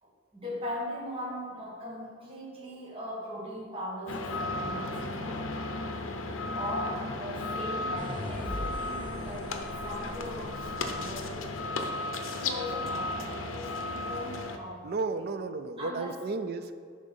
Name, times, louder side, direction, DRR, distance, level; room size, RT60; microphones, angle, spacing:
voice 1, 0.0-5.7 6.5-11.9 12.3-15.3 15.8-16.2, equal, 25° right, -4 dB, 1.4 m, -39 dB
sound 1, 4.1-14.6, left 2 dB, 70° left, 0.6 m, -34 dB
sound 2, 7.9-11.2, left 1 dB, 25° left, 0.7 m, -41 dB
voice 2, 14.8-16.7, right 3 dB, 50° right, 11 dB, 0.4 m, -33 dB
9.8 x 3.8 x 5.5 m, 2.1 s
head